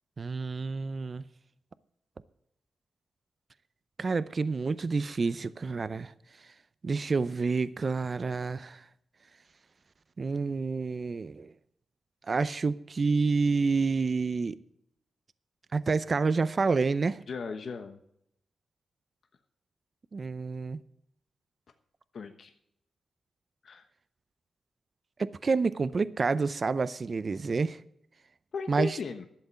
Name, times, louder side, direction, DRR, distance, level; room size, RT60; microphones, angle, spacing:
voice 1, 0.2-1.2 4.0-6.1 6.8-8.8 10.2-11.5 12.3-14.6 15.7-17.2 20.1-20.8 25.2-27.8 28.7-28.9, right 4 dB, 45° right, 0.6 m, -28 dB
voice 2, 17.3-18.0 22.1-22.5 23.6-23.9 28.5-29.2, left 5 dB, 65° left, 1.1 m, -36 dB
12.0 x 7.8 x 8.1 m
cardioid pair, 75°, 0 cm